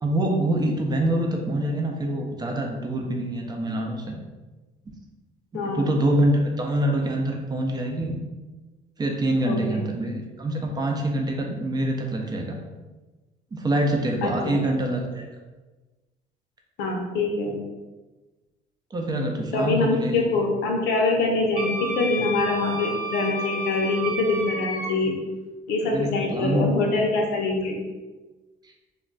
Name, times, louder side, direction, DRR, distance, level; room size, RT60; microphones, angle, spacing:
voice 1, 0.0-4.2 4.9-5.0 5.5-8.2 9.0-12.6 13.5-15.3 18.9-20.3 25.9-26.7, right 1 dB, 25° right, 1 dB, 0.5 m, -25 dB
voice 2, 5.5-5.9 9.5-9.8 14.2-14.6 16.8-17.6 19.5-25.1 25.7-27.8, left 3 dB, 85° left, 1 dB, 0.7 m, -24 dB
Wind instrument woodwind instrument, 21.6-24.9, right 1 dB, 70° right, 0.9 m, -31 dB
2.3 x 2.2 x 3.8 m, 1.2 s
cardioid pair, 110°, 17 cm